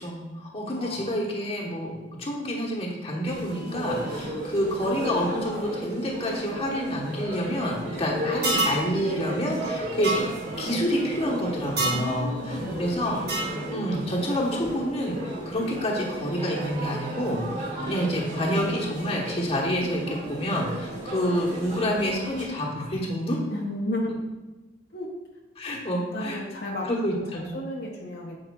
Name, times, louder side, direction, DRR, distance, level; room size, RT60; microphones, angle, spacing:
voice 1, 0.0-10.1 10.6-13.2 13.7-15.2 15.5-17.6 17.9-23.4 25.6-26.4 26.9-27.5, equal, 35° left, -2 dB, 1.1 m, -28 dB
voice 2, 0.7-1.1 11.8-13.1 23.5-24.1 24.9-25.1 26.1-28.4, left 1 dB, 65° left, -2 dB, 0.8 m, -33 dB
sound 1, 3.2-22.5, right 1 dB, 45° right, 2.0 m, -34 dB
sound 2, 8.4-8.8 10.0-10.2 11.8-12.1 13.3-13.6, right 2 dB, 60° right, 1.7 m, -25 dB
8.5 x 4.7 x 2.3 m, 1.2 s
head